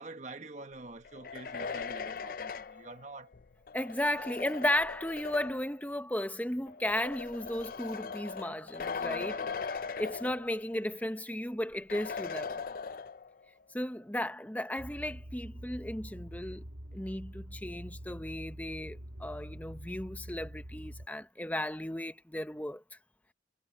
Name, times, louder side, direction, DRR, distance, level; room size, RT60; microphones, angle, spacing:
voice 1, 0.0-3.3 4.1-4.3 9.0-9.7, right 2 dB, 40° right, 1.3 m, -47 dB
sound 1, 1.0-5.7 6.7-10.8 11.2-11.3 11.9-13.4, left 5 dB, 50° left, 0.5 m, -40 dB
voice 2, 3.7-9.4 10.0-12.5 13.7-16.6 16.9-22.8, left 1 dB, 10° left, 0.9 m, -35 dB
sound 2, 14.8-21.1, equal, 70° right, 2.1 m, -45 dB
head